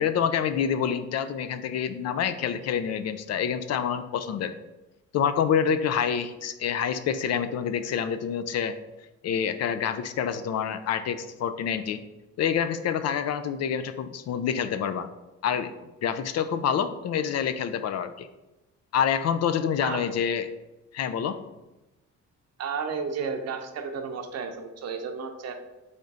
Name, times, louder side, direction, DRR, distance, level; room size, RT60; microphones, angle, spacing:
voice 1, 0.0-4.5 5.1-8.8 9.2-12.0 12.4-15.1 15.4-15.7 16.0-18.3 18.9-20.5 20.9-21.4, left 8 dB, 60° left, 11 dB, 0.4 m, -27 dB
voice 2, 22.6-25.6, right 5 dB, 60° right, 5 dB, 0.7 m, -32 dB
3.8 x 3.5 x 4.0 m, 1.0 s
cardioid pair, 90°, 30 cm